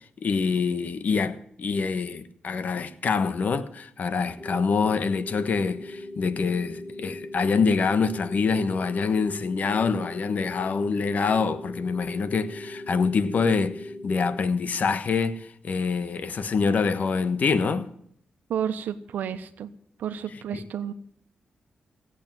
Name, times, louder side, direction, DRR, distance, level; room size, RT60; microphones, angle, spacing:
voice 1, 0.2-17.9 20.5-20.6, left 5 dB, 65° left, 1.4 m, -25 dB
sound 1, 4.4-14.4, left 1 dB, 15° left, 3.7 m, -40 dB
voice 2, 18.5-19.7 20.0-20.9, right 9 dB, 85° right, 1.1 m, -31 dB
17.5 x 8.4 x 9.1 m
cardioid pair, 60°, 3 cm